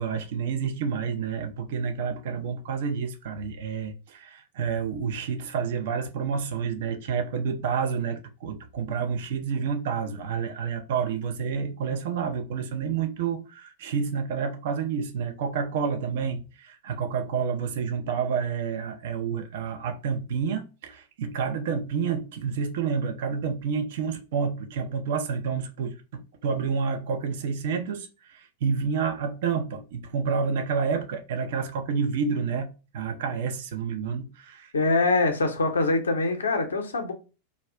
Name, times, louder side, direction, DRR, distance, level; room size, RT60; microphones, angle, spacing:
voice 1, 0.0-34.7, right 6 dB, 55° right, 0.5 m, -29 dB
voice 2, 34.7-37.1, left 3 dB, 70° left, 0.5 m, -24 dB
2.3 x 2.1 x 3.5 m
figure-of-eight pair, 90°, 0 cm